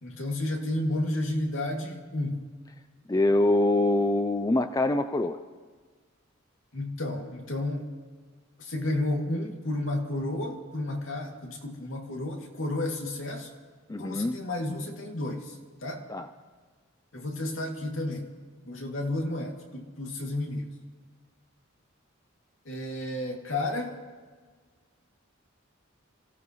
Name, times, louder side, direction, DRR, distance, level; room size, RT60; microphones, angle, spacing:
voice 1, 0.0-2.4 6.7-7.9 8.6-13.5 14.0-15.6 15.8-16.0 17.1-18.3 18.6-20.7 22.7-24.0, left 1 dB, 70° left, 0 dB, 2.5 m, -32 dB
voice 2, 3.1-5.4 13.9-14.4 16.1-16.3, left 2 dB, 15° left, 9 dB, 0.4 m, -24 dB
27.5 x 16.0 x 3.2 m, 1.5 s
head